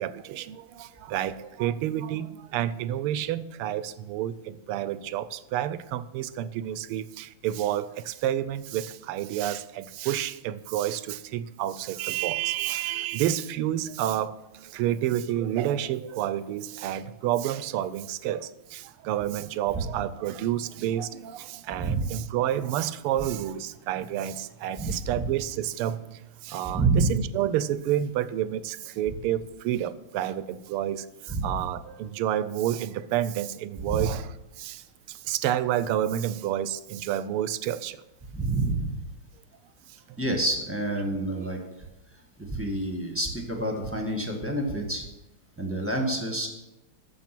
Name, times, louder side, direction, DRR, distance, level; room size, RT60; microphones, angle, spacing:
voice 1, 0.0-38.0 41.4-41.5, right 11 dB, 85° right, 15 dB, 1.5 m, -29 dB
voice 2, 21.7-22.0 24.8-25.3 26.7-27.2 31.3-31.5 33.9-34.1 38.3-38.9 40.2-41.6 42.5-45.1 45.6-46.5, right 2 dB, 5° right, 2 dB, 1.2 m, -28 dB
14.0 x 5.9 x 6.0 m, 0.97 s
omnidirectional pair, 2.4 m